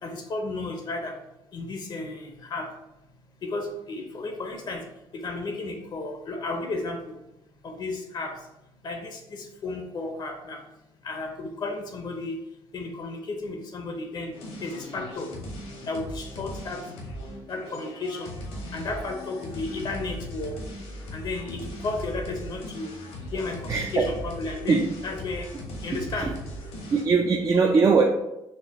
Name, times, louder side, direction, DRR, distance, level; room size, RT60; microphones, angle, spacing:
voice 1, 0.0-1.1 1.5-2.7 3.4-4.8 5.1-7.1 7.6-8.3 8.8-10.6 11.0-12.4 12.7-14.3 14.6-15.3 15.9-16.8 17.5-18.3 18.7-20.6 21.1-22.9 23.3-24.0 24.4-24.8 25.0-25.5 25.8-26.3, left 3 dB, 45° left, 3 dB, 0.7 m, -33 dB
sound 1, 14.3-27.0, equal, 80° left, 1.2 m, -38 dB
voice 2, 23.7-24.1 24.7-24.8 26.2-26.3 26.9-28.0, right 4 dB, 30° right, 1 dB, 0.4 m, -21 dB
4.2 x 2.2 x 4.0 m, 0.90 s
cardioid pair, 105°, 10 cm